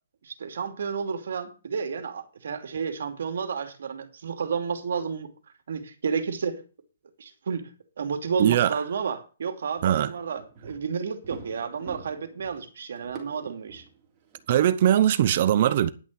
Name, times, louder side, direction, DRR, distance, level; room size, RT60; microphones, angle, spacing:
voice 1, 0.2-5.3 5.7-6.6 7.2-7.7 8.0-13.8, right 6 dB, 65° right, 2.5 m, -31 dB
voice 2, 8.4-8.8 9.8-10.1 14.5-15.9, right 11 dB, 40° right, 0.8 m, -20 dB
sound 1, 9.8-14.6, right 5 dB, 20° right, 3.2 m, -46 dB
11.0 x 6.2 x 7.5 m
hypercardioid pair, 165°, 0 cm